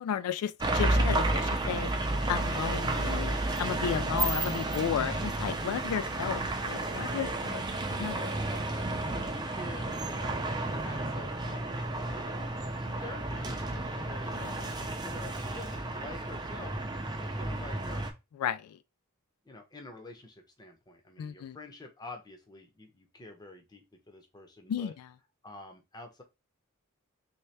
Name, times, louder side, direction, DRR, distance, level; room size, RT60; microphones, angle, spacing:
voice 1, 0.0-1.9 2.3-7.6 8.0-8.2 14.3-14.8 18.4-18.8 21.2-21.6 24.7-25.1, left 8 dB, 90° left, 0.3 m, -33 dB
sound 1, 0.6-18.1, right 2 dB, 20° right, 0.5 m, -32 dB
voice 2, 8.0-10.4 10.8-14.4 15.0-16.8 17.2-18.1 19.4-24.9 25.4-26.2, left 2 dB, 20° left, 0.7 m, -48 dB
3.3 x 2.8 x 3.2 m
head